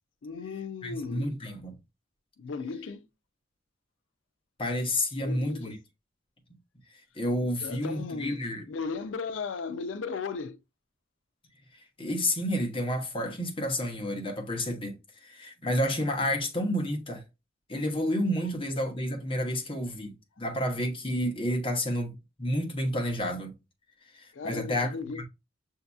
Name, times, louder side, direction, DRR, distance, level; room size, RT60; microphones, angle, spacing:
voice 1, 0.2-1.3 2.4-3.1 5.2-5.8 7.4-10.6 24.3-25.2, left 4 dB, 90° left, 0.4 m, -36 dB
voice 2, 0.8-1.8 4.6-5.8 6.9-8.6 12.0-17.2 17.7-23.5 24.1-25.2, left 1 dB, 30° left, 1.0 m, -30 dB
6.5 x 2.8 x 2.3 m
head